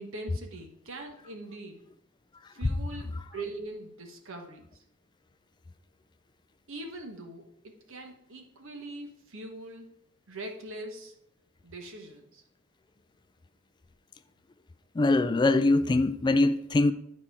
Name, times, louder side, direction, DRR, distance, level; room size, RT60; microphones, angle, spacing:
voice 1, 0.0-1.8 2.5-4.7 6.7-9.9 10.3-11.1 11.6-12.4, right 2 dB, 60° right, 1.2 m, -42 dB
voice 2, 15.0-16.9, left 2 dB, 20° left, 0.3 m, -23 dB
9.7 x 4.3 x 4.7 m
head